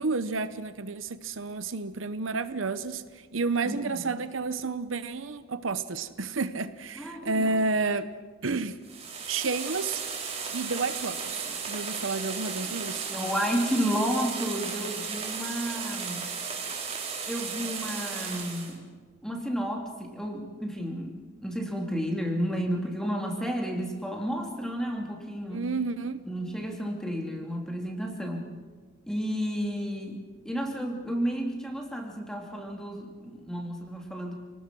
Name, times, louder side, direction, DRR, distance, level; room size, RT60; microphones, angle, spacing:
voice 1, 0.0-8.1 8.4-8.8 9.3-10.0 10.5-13.1 25.5-26.2, right 3 dB, 70° right, 12 dB, 0.9 m, -30 dB
voice 2, 3.6-4.1 6.9-7.5 11.5-11.6 12.6-12.8 13.1-16.3 17.3-18.9 19.2-25.7 26.3-28.5 29.0-34.3, equal, 5° left, 1 dB, 3.0 m, -32 dB
sound 1, 8.8-18.7, right 5 dB, 30° right, 3.9 m, -35 dB
29.0 x 19.0 x 6.2 m, 1.4 s
head